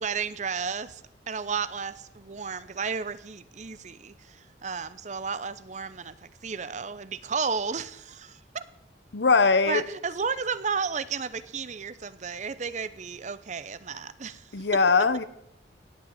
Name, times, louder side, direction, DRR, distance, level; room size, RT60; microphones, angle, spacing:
voice 1, 0.0-4.4 4.6-6.1 6.4-8.6 9.7-14.4, right 5 dB, 40° right, 15 dB, 0.6 m, -33 dB
voice 2, 9.1-9.8 14.5-15.2, left 4 dB, 70° left, 14 dB, 0.9 m, -21 dB
16.5 x 5.9 x 9.1 m, 0.81 s
head